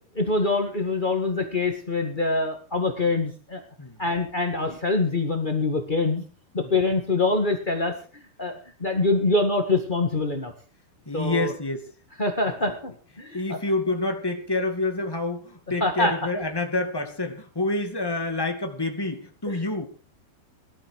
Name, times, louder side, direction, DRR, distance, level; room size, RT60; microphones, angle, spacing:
voice 1, 0.1-3.6 4.0-6.2 6.5-10.5 11.1-11.5 12.2-12.9 13.2-13.6 15.8-16.1 19.5-19.6, left 3 dB, 40° left, 3 dB, 0.6 m, -25 dB
voice 2, 11.0-11.9 12.7-12.8 13.3-19.9, left 2 dB, 10° left, 5 dB, 1.2 m, -28 dB
19.0 x 12.5 x 4.8 m, 0.37 s
omnidirectional pair, 4.4 m